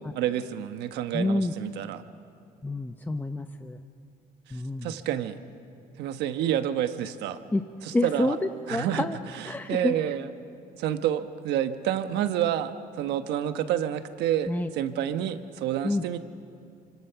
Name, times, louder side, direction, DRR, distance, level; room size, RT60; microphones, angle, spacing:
voice 1, 0.0-2.0 4.5-5.4 6.0-7.4 8.0-8.3 8.7-9.1 9.7-10.3 10.8-16.2, right 10 dB, 85° right, 9 dB, 1.3 m, -29 dB
voice 2, 1.1-1.5 2.6-3.8 4.5-5.0 7.5-7.6 7.9-9.2 9.4-9.9 14.5-14.7 15.8-16.0, left 2 dB, 10° left, 7 dB, 0.9 m, -28 dB
30.0 x 25.5 x 5.9 m, 2.7 s
cardioid pair, 110°, 17 cm